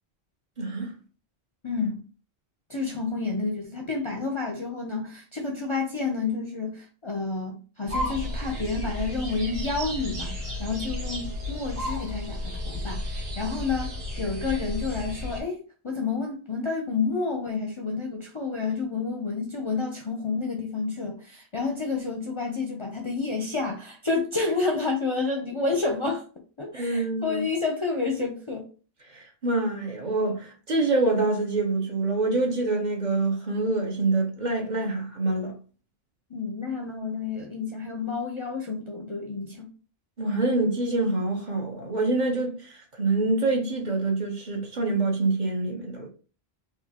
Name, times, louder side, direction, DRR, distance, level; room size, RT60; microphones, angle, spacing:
voice 1, 0.6-0.9 26.7-27.4 29.1-35.5 40.2-46.1, right 2 dB, 45° right, 1.0 m, -26 dB
voice 2, 1.6-2.0 2.7-26.2 26.6-28.7 36.3-39.7, left 4 dB, 35° left, 0.5 m, -30 dB
sound 1, 7.9-15.4, left 1 dB, 65° right, 1.7 m, -33 dB
4.2 x 2.6 x 2.8 m
omnidirectional pair, 1.1 m